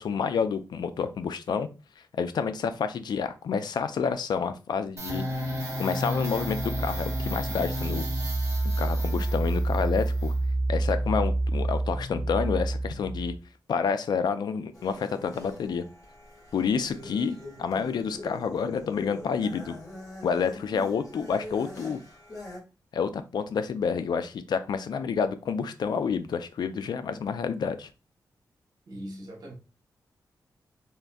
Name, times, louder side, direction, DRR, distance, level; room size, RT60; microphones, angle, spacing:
voice 1, 0.0-1.7 2.2-8.1 8.8-10.3 10.7-13.3 13.7-15.9 16.5-19.8 20.2-22.0 22.9-27.9, left 6 dB, 70° left, 0.4 m, -29 dB
sound 1, 5.0-13.4, right 1 dB, 40° right, 1.3 m, -28 dB
voice 2, 8.6-9.2 17.0-17.2 28.9-29.5, equal, 65° right, 1.2 m, -42 dB
sound 2, 14.7-22.6, left 2 dB, 45° left, 1.9 m, -43 dB
3.6 x 2.6 x 2.3 m
cardioid pair, 90°, 7 cm